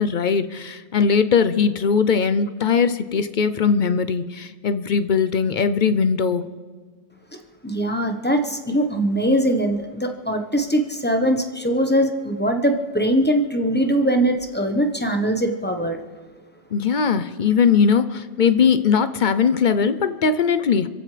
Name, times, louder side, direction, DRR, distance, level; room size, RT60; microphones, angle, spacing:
voice 1, 0.0-6.4 16.7-20.9, left 6 dB, 50° left, 12 dB, 0.7 m, -20 dB
voice 2, 7.6-16.0, right 1 dB, 10° left, 5 dB, 1.0 m, -21 dB
28.0 x 15.0 x 3.3 m, 1.5 s
omnidirectional pair, 1.3 m